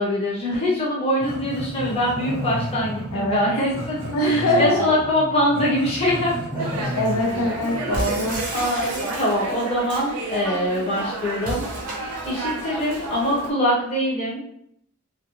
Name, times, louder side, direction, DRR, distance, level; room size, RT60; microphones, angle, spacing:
voice 1, 0.0-6.9 8.5-11.6 12.2-14.4, equal, 30° left, -6 dB, 0.8 m, -23 dB
Growling, 1.2-8.5, equal, 20° right, 0.9 m, -32 dB
voice 2, 3.1-3.5 4.1-4.8 7.0-8.4, equal, 80° left, -1 dB, 0.6 m, -22 dB
Dog, 6.6-13.5, right 3 dB, 90° right, 0.5 m, -32 dB
sound 1, 7.9-9.6 11.4-12.5, right 1 dB, 40° right, 0.6 m, -32 dB
2.4 x 2.2 x 3.0 m, 0.71 s
head